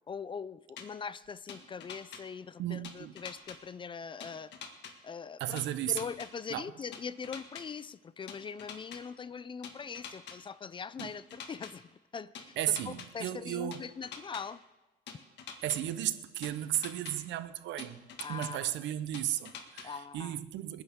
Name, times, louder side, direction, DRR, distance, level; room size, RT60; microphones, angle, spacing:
voice 1, 0.1-4.5 5.0-5.6 5.9-12.6 12.9-14.6 18.2-18.7 19.8-20.4, left 6 dB, 25° left, 0.4 m, -42 dB
sound 1, 0.8-0.9 1.5-2.2 2.8-3.6 4.2-4.9 5.6-6.3 6.9-7.6 8.3-9.0 9.6-10.4 11.0-11.7 12.4-13.1 13.7-14.4 15.1-15.8 16.4-17.1 17.8-18.5 19.1-19.9, left 7 dB, 65° left, 1.9 m, -45 dB
voice 2, 2.6-3.2 5.4-6.1 6.5-6.6 11.0-11.1 12.6-13.8 15.6-18.0 18.3-20.8, right 12 dB, 75° right, 0.9 m, -34 dB
27.0 x 9.9 x 3.7 m
cardioid pair, 115°, 19 cm